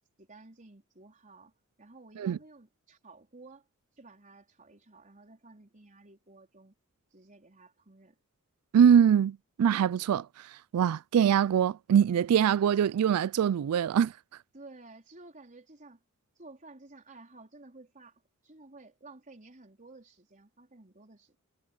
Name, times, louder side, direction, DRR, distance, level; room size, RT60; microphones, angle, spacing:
voice 1, 0.2-1.5 1.8-3.7 3.9-6.7 7.1-8.2 14.5-16.0 16.3-21.4, right 3 dB, 35° right, 4.3 m, -53 dB
voice 2, 8.7-14.1, right 8 dB, 85° right, 0.3 m, -23 dB
head